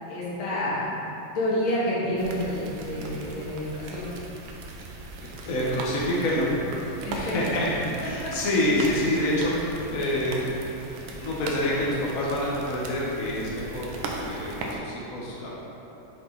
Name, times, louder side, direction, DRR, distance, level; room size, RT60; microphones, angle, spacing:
voice 1, 0.1-1.0 1.3-4.1 7.0-7.5 8.2-8.3, left 1 dB, 85° left, -7 dB, 2.3 m, -29 dB
sound 1, 2.2-14.8, right 3 dB, 80° right, 1.5 m, -38 dB
voice 2, 5.5-6.5 7.1-10.5 11.0-15.5, left 1 dB, 45° left, -6 dB, 1.5 m, -27 dB
6.0 x 6.0 x 4.0 m, 3.0 s
omnidirectional pair, 2.2 m